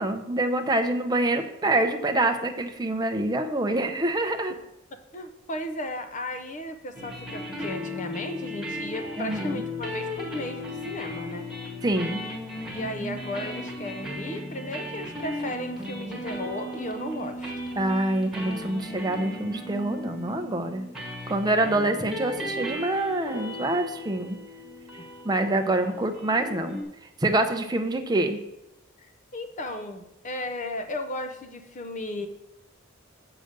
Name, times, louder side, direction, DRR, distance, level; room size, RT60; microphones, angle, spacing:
voice 1, 0.0-4.5 9.2-9.6 11.8-12.2 17.8-20.8 21.3-24.4 25.2-26.8 27.2-28.4, right 2 dB, 20° right, 5 dB, 0.6 m, -26 dB
voice 2, 5.1-11.5 12.7-17.5 21.6-21.8 25.0-25.1 29.0-32.3, left 1 dB, 35° left, 7 dB, 0.6 m, -35 dB
sound 1, 6.9-26.8, left 1 dB, ahead, 1.5 m, -36 dB
6.6 x 4.9 x 6.6 m, 0.88 s
head